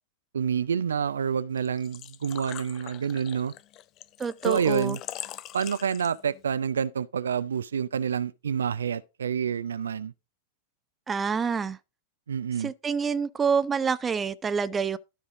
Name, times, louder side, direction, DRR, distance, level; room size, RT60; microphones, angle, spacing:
voice 1, 0.3-3.5 4.4-5.0 5.5-10.1 12.3-12.7, right 7 dB, 70° right, 0.4 m, -28 dB
Engine / Trickle dribble / Fill (with liquid), 1.6-6.4, left 13 dB, 35° left, 0.5 m, -42 dB
voice 2, 4.2-5.0 11.1-11.8 12.6-15.0, right 6 dB, 20° right, 0.5 m, -27 dB
12.5 x 5.5 x 3.6 m
figure-of-eight pair, 90°, 0 cm